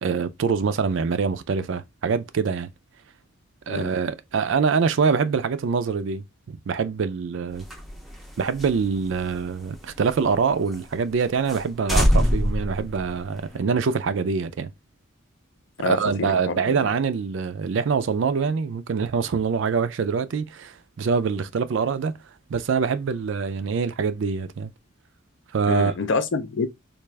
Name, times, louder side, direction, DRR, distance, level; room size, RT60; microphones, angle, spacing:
voice 1, 0.0-2.7 3.7-7.7 8.4-14.7 15.9-22.1 22.5-24.7 25.5-25.9, right 5 dB, 60° right, 0.4 m, -24 dB
sound 1, 7.5-10.4 10.7-10.8 11.1-11.2 11.5-11.6 11.9-13.6, equal, ahead, 0.5 m, -24 dB
voice 2, 15.8-16.9 25.7-26.7, left 4 dB, 55° left, 0.4 m, -27 dB
3.4 x 2.4 x 3.2 m
head